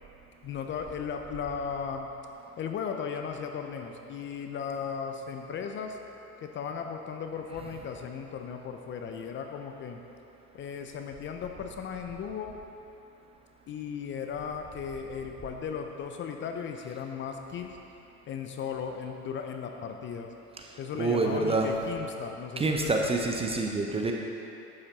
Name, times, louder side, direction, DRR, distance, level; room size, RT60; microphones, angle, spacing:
voice 1, 0.4-2.1 2.6-6.0 6.4-10.0 10.5-12.6 13.7-17.8 18.3-20.3 20.8-23.0, left 6 dB, 25° left, 4 dB, 0.7 m, -36 dB
voice 2, 21.0-21.7 22.6-24.1, right 3 dB, 15° right, 1 dB, 0.7 m, -27 dB
12.0 x 8.6 x 4.1 m, 2.9 s
hypercardioid pair, 95°, 46 cm